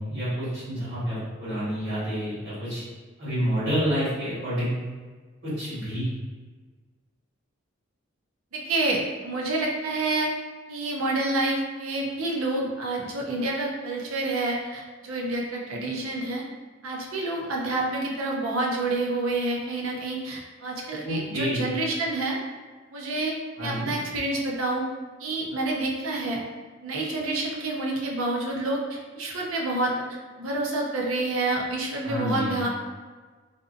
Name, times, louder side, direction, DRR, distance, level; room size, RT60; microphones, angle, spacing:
voice 1, 0.0-2.8 3.2-4.7 5.4-6.1 21.0-21.7 23.6-23.9 32.0-32.7, equal, 70° right, -12 dB, 1.4 m, -29 dB
voice 2, 8.5-10.3 10.7-16.4 16.8-22.4 22.9-24.8 25.2-26.4 26.8-29.9 30.4-32.7, right 2 dB, 90° right, -1 dB, 0.6 m, -28 dB
2.6 x 2.4 x 2.4 m, 1.4 s
head